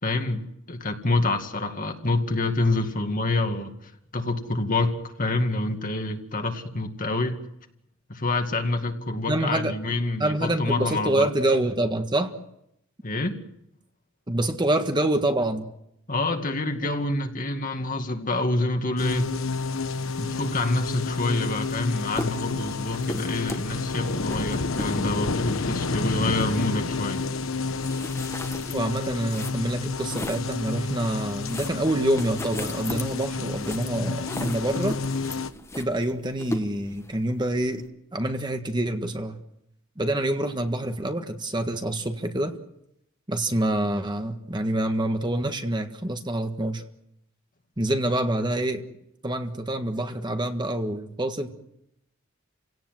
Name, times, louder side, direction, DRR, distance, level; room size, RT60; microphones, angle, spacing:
voice 1, 0.0-3.7 4.1-7.4 8.1-11.3 13.0-13.4 16.1-19.3 20.2-27.2, left 2 dB, 40° left, 5 dB, 2.2 m, -27 dB
voice 2, 9.3-9.7 10.2-12.3 14.3-15.7 28.7-35.0 35.7-37.8 38.1-39.4 40.0-42.5 43.3-46.8 47.8-48.8 49.2-51.5, right 1 dB, 20° right, 6 dB, 1.6 m, -26 dB
sound 1, 19.0-35.5, left 4 dB, 85° left, 1.1 m, -30 dB
sound 2, 21.7-21.8 22.1-30.6 31.1-37.9, left 1 dB, 15° left, 1.4 m, -38 dB
30.0 x 17.5 x 7.8 m, 0.80 s
head